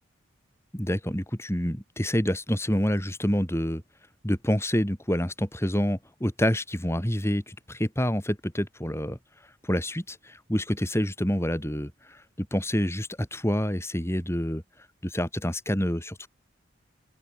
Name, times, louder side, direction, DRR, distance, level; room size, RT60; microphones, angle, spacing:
voice 1, 0.7-3.8 4.2-9.2 9.6-14.6 15.0-16.3, equal, 15° left, 6.3 m, -27 dB
open air
head